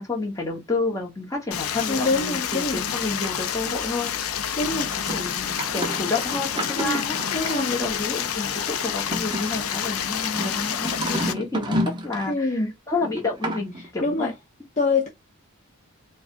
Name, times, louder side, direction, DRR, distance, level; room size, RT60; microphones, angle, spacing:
voice 1, 0.0-7.2 7.5-14.3, left 3 dB, 15° left, 1.2 m, -30 dB
Stream, 1.5-11.3, left 8 dB, 75° left, 0.5 m, -28 dB
voice 2, 1.9-2.8 4.6-4.9 6.8-7.0 7.3-7.8 12.3-12.7 14.0-14.3 14.8-15.1, left 3 dB, 30° left, 0.6 m, -25 dB
sound 1, 4.8-7.9 8.9-12.4 13.0-13.9, equal, 20° right, 0.7 m, -31 dB
4.7 x 2.3 x 2.5 m
head